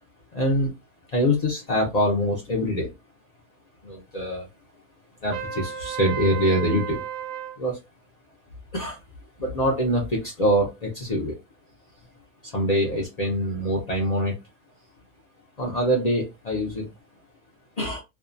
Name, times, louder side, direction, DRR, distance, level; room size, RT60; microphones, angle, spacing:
voice 1, 0.3-0.7 1.1-2.9 3.8-4.5 5.2-7.0 7.6-7.8 8.7-9.0 9.4-11.4 12.4-14.3 15.6-16.9 17.8-18.0, equal, 80° left, -2 dB, 0.3 m, -24 dB
Trumpet, 5.3-7.6, right 9 dB, 65° right, 0.8 m, -33 dB
2.6 x 2.3 x 2.5 m, 0.24 s
omnidirectional pair, 1.7 m